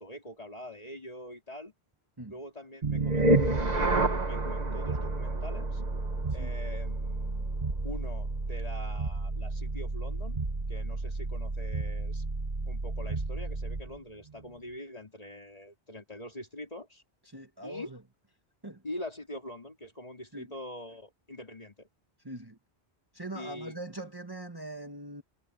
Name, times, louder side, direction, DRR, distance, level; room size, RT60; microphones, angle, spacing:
voice 1, 0.0-1.7 2.3-5.8 6.3-7.6 7.8-10.4 10.7-12.2 12.6-17.0 17.6-17.9 18.8-21.9 23.3-23.8, left 1 dB, 35° left, 3.5 m, -44 dB
sound 1, 2.8-14.0, right 2 dB, 40° right, 1.5 m, -30 dB
voice 2, 17.3-18.0 18.6-18.8 20.3-20.5 22.2-22.6 23.1-25.2, right 1 dB, 20° right, 1.5 m, -41 dB
omnidirectional pair, 1.1 m